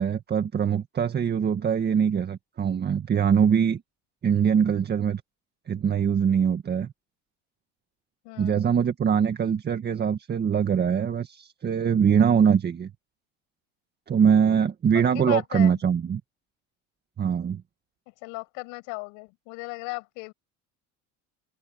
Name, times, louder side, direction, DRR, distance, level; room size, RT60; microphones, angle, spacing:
voice 1, 0.0-3.8 4.2-5.2 5.7-6.9 8.4-12.9 14.1-16.2 17.2-17.6, right 7 dB, 30° right, 1.9 m, -23 dB
voice 2, 8.2-8.7 14.9-15.8 18.1-20.3, left 31 dB, 80° left, 7.6 m, -37 dB
open air
cardioid pair, 115°, 31 cm